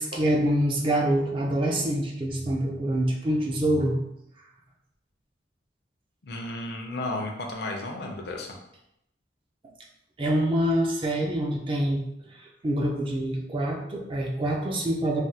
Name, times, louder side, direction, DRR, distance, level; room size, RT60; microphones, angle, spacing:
voice 1, 0.0-4.0 10.2-12.1 12.3-15.2, right 1 dB, 30° right, 0 dB, 0.4 m, -26 dB
voice 2, 6.2-8.6, left 2 dB, 60° left, 2 dB, 0.5 m, -33 dB
3.3 x 2.2 x 2.7 m, 0.81 s
head